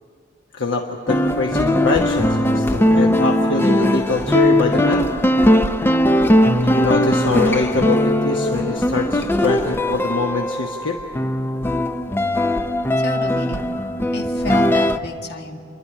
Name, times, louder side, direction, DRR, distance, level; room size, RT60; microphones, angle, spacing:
voice 1, 0.5-5.1 6.6-11.0, left 3 dB, 75° left, 1 dB, 1.2 m, -23 dB
sound 1, 1.1-15.0, left 1 dB, 10° left, 0.5 m, -19 dB
voice 2, 13.0-13.6 14.1-15.6, left 3 dB, 60° left, 2 dB, 1.8 m, -32 dB
28.5 x 12.0 x 9.9 m, 2.4 s
head